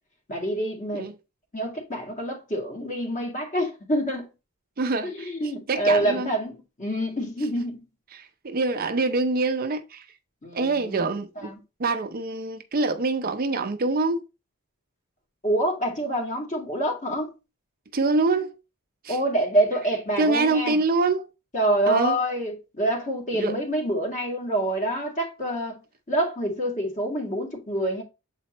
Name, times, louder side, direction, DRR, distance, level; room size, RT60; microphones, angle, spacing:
voice 1, 0.3-1.1 1.5-4.3 5.0-7.8 10.4-11.1 11.4-11.6 15.4-17.3 19.1-20.8 21.5-25.8 26.1-28.0, right 1 dB, 35° left, 2.0 m, -26 dB
voice 2, 4.8-6.3 8.1-10.1 10.5-11.5 11.8-14.2 17.9-18.6 19.0-19.2 20.2-21.3 21.9-22.2 23.3-23.5, right 3 dB, 40° right, 0.6 m, -25 dB
7.4 x 4.3 x 3.0 m
head